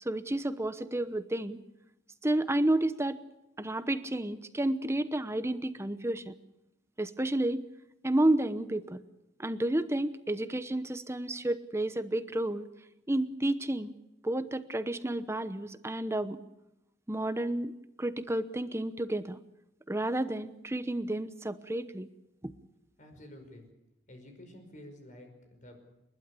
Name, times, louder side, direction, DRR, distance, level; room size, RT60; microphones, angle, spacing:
voice 1, 0.0-1.6 2.2-3.2 3.6-6.3 7.0-7.6 8.0-9.0 9.4-12.6 13.1-13.9 14.2-16.4 17.1-17.7 18.0-19.4 19.9-22.1 22.4-22.5, right 1 dB, 15° right, 12 dB, 0.9 m, -31 dB
voice 2, 23.0-23.6 24.1-25.7, left 1 dB, 45° left, 5 dB, 5.3 m, -50 dB
29.0 x 12.0 x 8.5 m, 0.90 s
head